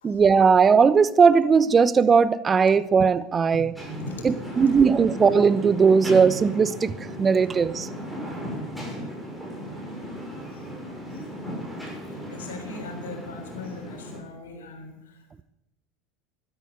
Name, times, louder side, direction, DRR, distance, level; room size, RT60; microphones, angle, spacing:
voice 1, 0.0-3.7 4.2-6.9 7.2-7.9, right 5 dB, 25° right, 17 dB, 0.8 m, -18 dB
sound 1, 3.7-14.2, equal, ahead, 6.8 m, -36 dB
voice 2, 12.1-15.4, left 3 dB, 80° left, 5 dB, 3.7 m, -40 dB
13.0 x 12.0 x 8.1 m, 0.82 s
hypercardioid pair, 85°, 0 cm